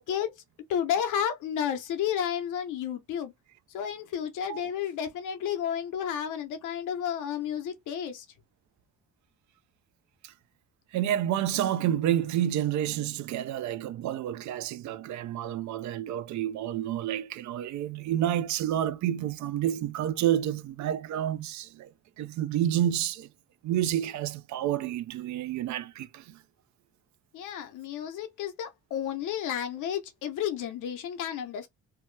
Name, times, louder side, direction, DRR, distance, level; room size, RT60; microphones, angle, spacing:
voice 1, 0.7-3.3 3.7-8.3 27.3-31.7, left 9 dB, 85° left, 0.9 m, -31 dB
voice 2, 10.9-21.9 22.2-23.3 23.6-26.4, right 11 dB, 70° right, 0.4 m, -29 dB
2.8 x 2.1 x 3.2 m
cardioid pair, 90°, 30 cm